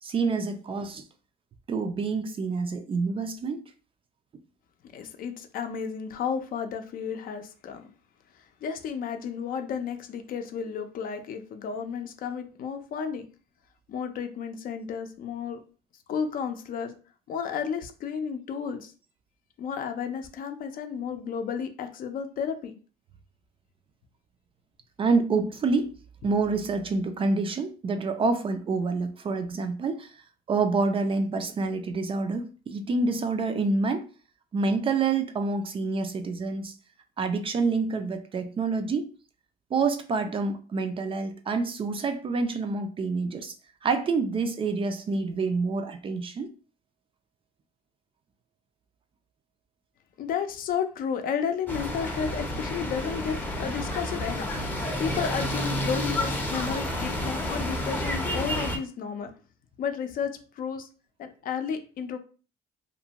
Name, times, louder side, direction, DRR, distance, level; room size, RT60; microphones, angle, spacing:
voice 1, 0.0-1.1 1.7-3.6 25.0-25.9 26.2-30.1 30.5-34.0 34.5-36.7 37.2-39.1 39.7-43.5 43.8-46.5, right 4 dB, 30° right, 8 dB, 0.4 m, -27 dB
voice 2, 4.9-7.9 8.6-13.3 13.9-15.6 16.1-16.9 17.3-18.9 19.6-22.8 50.2-54.5 55.0-59.3 59.8-60.9 61.2-62.2, left 7 dB, 55° left, 7 dB, 0.5 m, -32 dB
sound 1, 51.7-58.8, left 1 dB, 10° left, 0.6 m, -30 dB
2.5 x 2.1 x 2.8 m, 0.36 s
cardioid pair, 110°, 17 cm